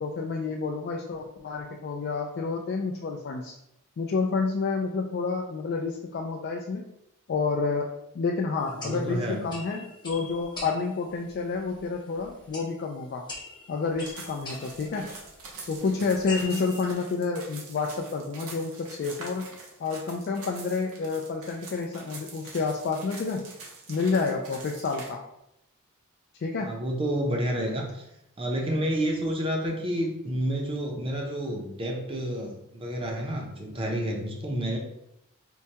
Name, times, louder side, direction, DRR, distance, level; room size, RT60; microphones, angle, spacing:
voice 1, 0.0-3.5 4.0-6.8 7.3-13.3 13.7-15.1 15.7-19.5 19.8-23.5 23.9-25.2 26.3-26.7, left 4 dB, 50° left, 1 dB, 0.3 m, -29 dB
sound 1, 8.6-16.9, left 3 dB, 20° left, 0.8 m, -44 dB
voice 2, 8.7-9.4 26.6-28.0 28.4-34.8, equal, 25° right, 0 dB, 0.6 m, -29 dB
sound 2, 14.0-25.1, right 3 dB, 80° right, 0.9 m, -45 dB
4.5 x 2.2 x 2.8 m, 0.82 s
head